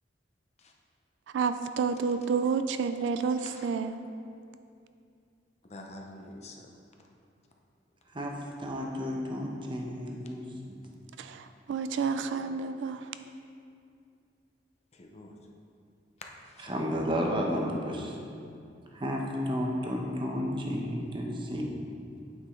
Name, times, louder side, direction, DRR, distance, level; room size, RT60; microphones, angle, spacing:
voice 1, 1.3-3.9 11.2-13.1, right 5 dB, 80° right, 10 dB, 0.3 m, -30 dB
voice 2, 3.2-3.7 5.6-6.7 14.9-15.3 16.6-16.7, left 1 dB, 35° left, 1 dB, 0.7 m, -47 dB
voice 3, 8.6-10.4 16.6-18.1 18.9-21.7, equal, 30° right, 0 dB, 0.9 m, -32 dB
8.8 x 4.8 x 3.7 m, 2.5 s
head